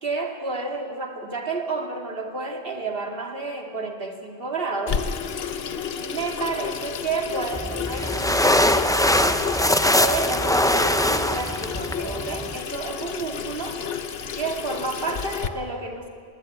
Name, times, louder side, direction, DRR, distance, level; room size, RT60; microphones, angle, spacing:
voice 1, 0.0-5.0 6.0-9.4 10.0-13.8 14.3-16.1, right 3 dB, 65° right, 2 dB, 2.6 m, -30 dB
Water tap faucet / Sink (filling or washing), 4.9-15.5, left 7 dB, 75° left, 1.2 m, -31 dB
sound 1, 7.5-12.6, left 1 dB, 5° left, 0.5 m, -22 dB
20.5 x 19.5 x 9.2 m, 2.2 s
omnidirectional pair, 1.0 m